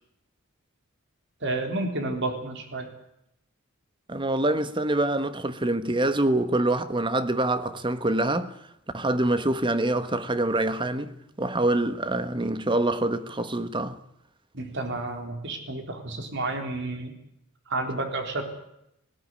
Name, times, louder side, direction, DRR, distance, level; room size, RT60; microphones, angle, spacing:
voice 1, 1.4-2.9 14.5-17.1 17.7-18.4, right 2 dB, 60° right, 4.0 m, -30 dB
voice 2, 4.1-8.5 8.9-14.0, right 1 dB, 25° right, 1.3 m, -25 dB
20.0 x 17.0 x 9.8 m
head